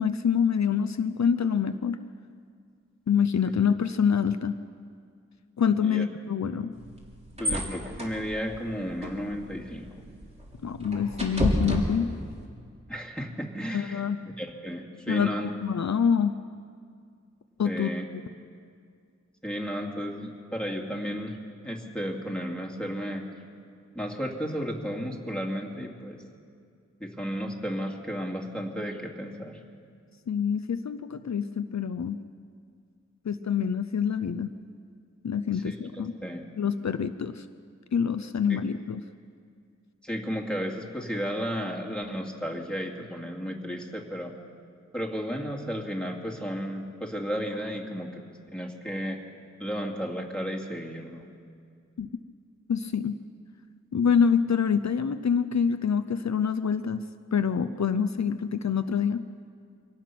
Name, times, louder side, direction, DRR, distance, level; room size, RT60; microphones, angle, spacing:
voice 1, 0.0-2.0 3.1-4.6 5.6-6.7 10.6-12.1 13.7-14.2 15.1-16.3 17.6-17.9 30.3-32.2 33.2-34.5 35.2-36.1 36.6-37.4 37.9-39.0 52.0-52.1 52.7-53.1 53.9-57.0 57.3-59.2, left 7 dB, 65° left, 9 dB, 0.6 m, -26 dB
sound 1, 6.7-12.5, equal, 20° right, 3.4 m, -32 dB
voice 2, 7.4-9.9 12.9-14.0 14.4-15.5 17.6-18.0 19.4-21.4 21.6-23.3 23.9-26.2 27.0-29.6 35.6-35.8 36.2-36.4 38.5-38.6 40.0-44.3 44.9-48.2 48.5-49.2 49.6-51.3, equal, 5° left, -1 dB, 2.5 m, -33 dB
24.0 x 18.0 x 6.0 m, 2.2 s
wide cardioid pair, 80°, 30 cm